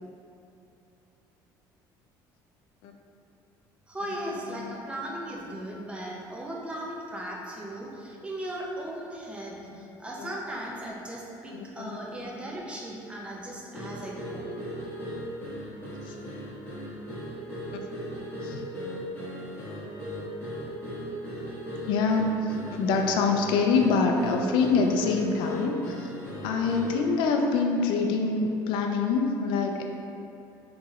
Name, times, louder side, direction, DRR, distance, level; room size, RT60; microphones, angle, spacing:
voice 1, 3.9-14.5, right 1 dB, 15° right, -3 dB, 0.6 m, -37 dB
voice 2, 11.5-12.0 16.1-16.2 18.4-18.7 21.9-29.8, left 4 dB, 75° left, 3 dB, 0.4 m, -26 dB
sound 1, 13.7-27.1, equal, 20° left, 1.3 m, -37 dB
4.5 x 3.0 x 2.4 m, 2.8 s
cardioid pair, 130°, 9 cm